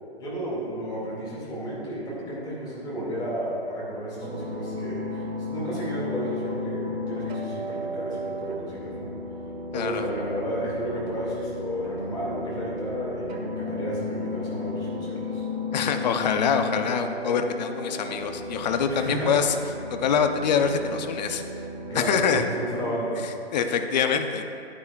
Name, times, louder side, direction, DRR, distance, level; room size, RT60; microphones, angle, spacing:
voice 1, 0.2-9.1 9.7-15.4 18.9-19.4 21.8-23.2, equal, 10° left, -6 dB, 2.2 m, -32 dB
sound 1, 4.2-22.5, left 2 dB, 70° right, 1.4 m, -34 dB
voice 2, 9.7-10.1 15.7-19.5 19.9-21.4 21.9-22.4 23.5-24.4, left 6 dB, 40° left, 7 dB, 0.6 m, -25 dB
11.0 x 9.7 x 2.4 m, 2.6 s
hypercardioid pair, 145°, 33 cm